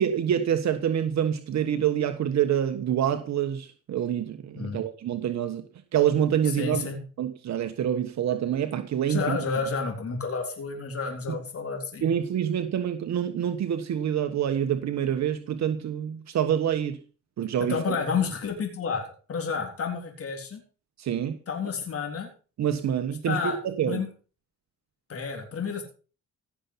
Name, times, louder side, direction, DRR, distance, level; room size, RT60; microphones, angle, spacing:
voice 1, 0.0-5.6 5.9-6.8 7.2-9.4 12.0-17.0 17.4-18.0 21.0-21.4 22.6-24.0, right 9 dB, 65° right, 1.3 m, -26 dB
voice 2, 6.6-7.0 9.1-12.1 17.7-20.6 21.5-22.3 23.2-23.6 23.9-24.1 25.1-25.8, left 5 dB, 50° left, 3.9 m, -30 dB
16.5 x 7.0 x 5.7 m
cardioid pair, 90°, 30 cm